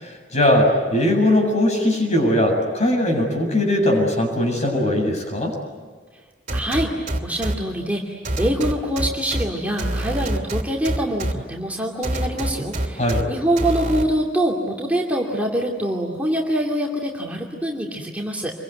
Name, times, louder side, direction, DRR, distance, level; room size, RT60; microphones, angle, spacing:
voice 1, 0.0-5.6 13.0-13.3, left 1 dB, 40° left, 2 dB, 7.3 m, -20 dB
voice 2, 6.5-18.5, right 1 dB, 10° right, -1 dB, 2.6 m, -24 dB
sound 1, 6.5-7.5 8.2-9.4 9.8-11.3 12.0-13.2 13.6-14.0, right 1 dB, 45° right, 2.7 m, -25 dB
27.0 x 23.0 x 9.4 m, 1.5 s
head